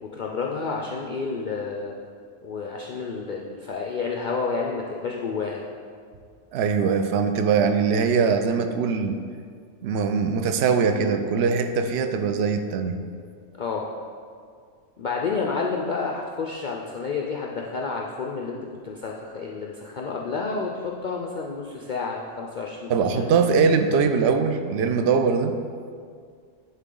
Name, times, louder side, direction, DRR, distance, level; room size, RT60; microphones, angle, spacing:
voice 1, 0.0-1.9 2.4-5.7 13.6-13.9 15.0-23.2, left 4 dB, 60° left, -1 dB, 0.5 m, -30 dB
voice 2, 6.5-9.2 9.8-13.0 22.9-25.6, right 5 dB, 65° right, 7 dB, 0.7 m, -22 dB
11.0 x 4.0 x 3.8 m, 2.1 s
omnidirectional pair, 1.4 m